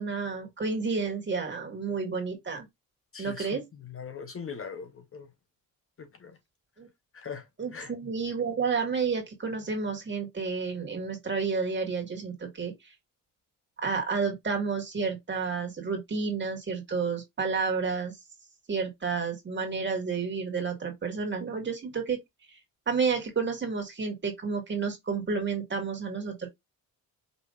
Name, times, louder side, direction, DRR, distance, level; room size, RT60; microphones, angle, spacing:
voice 1, 0.0-2.7 3.2-3.7 6.8-6.9 7.6-12.9 13.8-18.2 18.7-22.2 22.5-22.6 22.9-26.5, right 5 dB, 30° right, 1.9 m, -30 dB
voice 2, 3.1-5.3 6.0-6.4 7.1-7.5 7.7-7.9, left 6 dB, 35° left, 0.9 m, -41 dB
5.3 x 3.2 x 2.5 m
cardioid pair, 125°, 36 cm